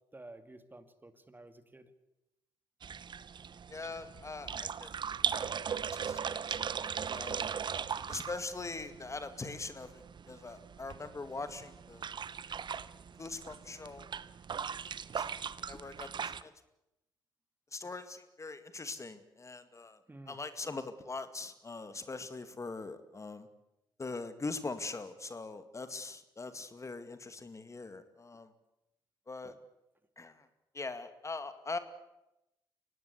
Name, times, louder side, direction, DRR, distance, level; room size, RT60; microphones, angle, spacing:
voice 1, 0.1-1.9 20.1-20.4 29.4-29.5, right 2 dB, 20° right, 10 dB, 2.4 m, -52 dB
sound 1, 2.8-16.4, right 7 dB, 45° right, 1.0 m, -39 dB
voice 2, 3.7-4.9 5.9-6.6 7.1-7.4 8.1-12.1 13.2-14.1 15.2-15.4 15.7-16.5 17.7-20.0 20.3-23.5 24.0-28.5 29.3-29.6 30.2-30.5 30.7-31.8, left 3 dB, 30° left, 10 dB, 2.2 m, -42 dB
24.5 x 18.5 x 8.4 m, 0.91 s
hypercardioid pair, 50°, 11 cm